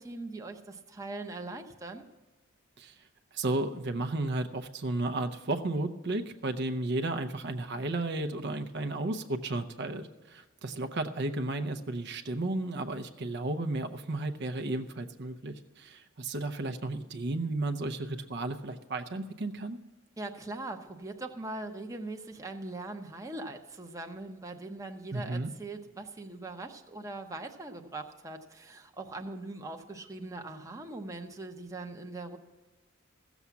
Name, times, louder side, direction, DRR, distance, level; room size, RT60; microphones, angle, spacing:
voice 1, 0.0-2.1 20.2-32.4, right 2 dB, 15° right, 3 dB, 0.7 m, -41 dB
voice 2, 3.3-19.8 25.1-25.5, right 2 dB, 55° right, 9 dB, 0.7 m, -33 dB
15.5 x 7.1 x 7.1 m, 1.2 s
head